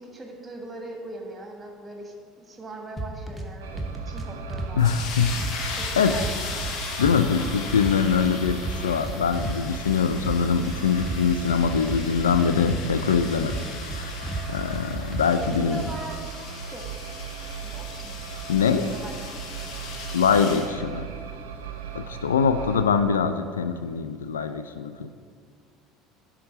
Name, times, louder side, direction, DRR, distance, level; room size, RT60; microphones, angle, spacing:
voice 1, 0.0-5.0 5.8-6.3 15.4-17.2 17.6-18.2 18.6-19.8 22.0-22.2, right 2 dB, 20° right, 2 dB, 1.5 m, -41 dB
sound 1, 3.0-3.5 3.8-4.7 5.0-6.7 7.0-7.9 8.2-10.0 10.3-11.2 11.5-13.2 13.5-14.4 14.7-15.9, right 2 dB, 5° right, 1.1 m, -32 dB
sound 2, 3.6-22.8, right 7 dB, 70° right, 0.6 m, -38 dB
voice 2, 4.8-5.3 5.6-6.1 7.0-13.6 13.9-15.8 18.5-18.9 20.1-21.1 21.9-25.1, left 6 dB, 80° left, 9 dB, 0.3 m, -23 dB
Letting Air Out Of Balloon, 4.8-20.7, left 4 dB, 50° left, 1.0 m, -38 dB
11.0 x 3.8 x 5.6 m, 2.1 s
figure-of-eight pair, 65°, 0 cm